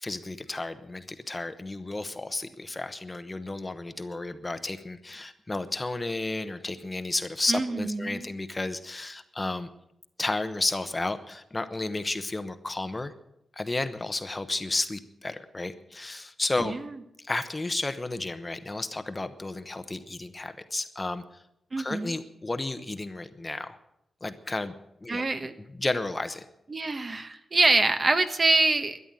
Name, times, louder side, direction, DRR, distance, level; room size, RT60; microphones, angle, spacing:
voice 1, 0.0-9.7 10.2-13.1 13.6-16.7 17.2-21.2 21.8-23.8 24.2-24.7 25.0-25.3 25.7-26.4, left 2 dB, 20° left, 10 dB, 0.9 m, -32 dB
voice 2, 7.5-8.3 16.6-16.9 21.7-22.1 25.1-25.6 26.7-29.0, right 3 dB, 35° right, 9 dB, 1.1 m, -25 dB
13.0 x 10.0 x 8.9 m, 0.81 s
wide cardioid pair, 110°, 0 cm